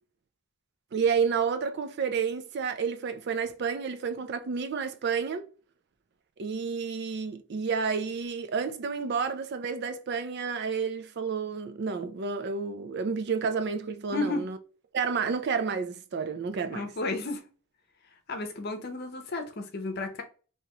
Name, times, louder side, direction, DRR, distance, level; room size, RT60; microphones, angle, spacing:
voice 1, 0.9-5.5 6.4-14.6 14.9-16.8, right 5 dB, 50° right, 0.4 m, -30 dB
voice 2, 14.1-14.5 16.7-17.4 18.3-20.2, left 3 dB, 45° left, 0.7 m, -32 dB
3.3 x 2.8 x 2.9 m
head